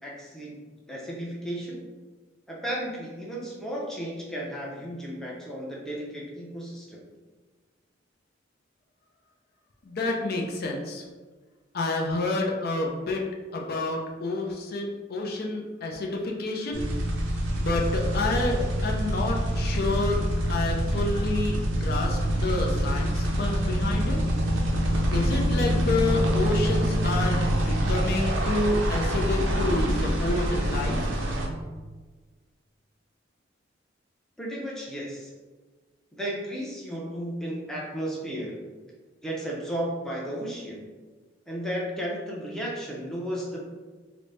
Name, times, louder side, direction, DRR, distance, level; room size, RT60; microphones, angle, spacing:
voice 1, 0.0-1.8 2.5-7.0 34.4-35.3 36.1-38.6 39.2-40.9 41.5-43.6, equal, 5° left, -4 dB, 0.5 m, -34 dB
voice 2, 9.9-11.0 11.7-13.2 13.5-16.8 17.6-20.2 20.5-24.2 25.1-31.0, left 2 dB, 55° left, 0 dB, 0.5 m, -29 dB
sound 1, 16.7-31.5, equal, 85° right, 0.6 m, -26 dB
3.9 x 2.0 x 3.3 m, 1.4 s
head